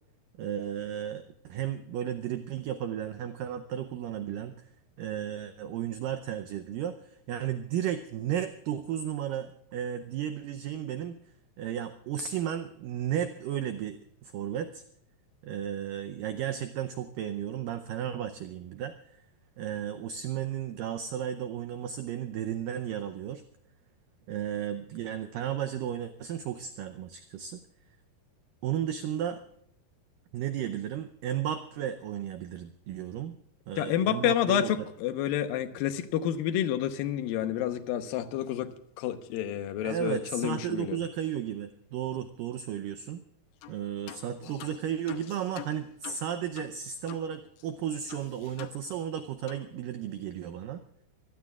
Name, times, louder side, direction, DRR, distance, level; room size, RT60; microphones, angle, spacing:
voice 1, 0.4-4.6 5.0-11.2 11.6-14.8 15.4-19.2 19.6-23.4 24.3-27.6 28.6-29.4 30.3-33.3 33.7-34.7 39.8-43.2 43.7-50.8, right 10 dB, 80° right, 9 dB, 2.0 m, -34 dB
voice 2, 33.8-41.0, left 11 dB, 70° left, 9 dB, 2.5 m, -29 dB
sound 1, 43.6-43.8 44.1-47.3 47.6-47.7 48.1-49.2 49.5-49.7, left 15 dB, 85° left, 3.0 m, -46 dB
25.0 x 19.0 x 2.4 m, 0.71 s
omnidirectional pair, 4.8 m